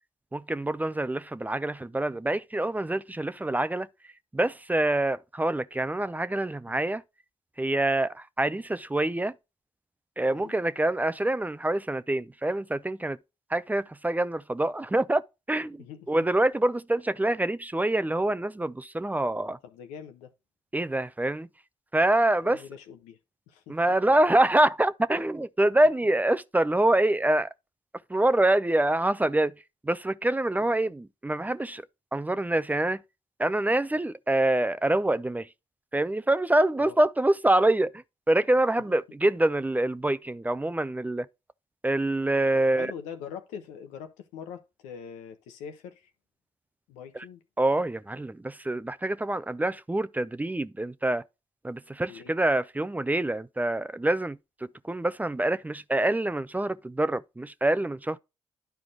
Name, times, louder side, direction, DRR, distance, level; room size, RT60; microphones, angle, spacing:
voice 1, 0.3-3.9 4.3-7.0 7.6-9.3 10.2-13.2 13.5-15.2 15.5-19.6 20.7-21.5 21.9-22.6 23.7-27.5 28.1-29.5 29.8-31.9 32.1-33.0 33.4-35.5 35.9-41.3 41.8-42.9 47.1-47.2 47.6-51.2 51.6-54.4 54.8-58.2, right 1 dB, 15° right, 0.5 m, -25 dB
voice 2, 15.8-16.1 19.6-20.3 22.4-23.2 23.5-23.8 30.6-30.7 36.8-37.0 42.5-46.1 46.9-47.4 52.1-52.3, left 7 dB, 85° left, 1.0 m, -43 dB
10.5 x 4.6 x 3.7 m
hypercardioid pair, 50°, 12 cm